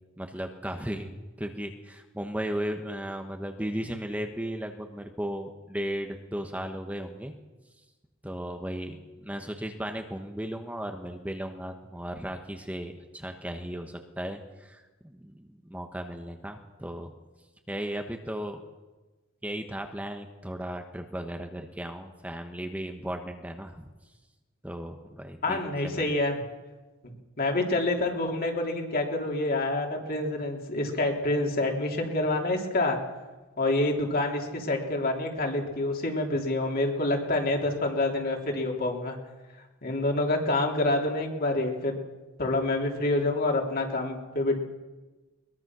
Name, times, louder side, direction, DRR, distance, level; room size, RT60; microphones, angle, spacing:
voice 1, 0.2-7.3 8.2-17.1 17.7-18.6 19.4-23.9 24.6-25.6 25.8-26.1, equal, 5° right, 4 dB, 1.1 m, -36 dB
voice 2, 25.4-26.4 27.0-33.0 33.6-39.2 39.8-41.9 42.4-44.6, left 2 dB, 45° left, 1 dB, 3.5 m, -27 dB
22.0 x 21.5 x 6.2 m, 1.2 s
head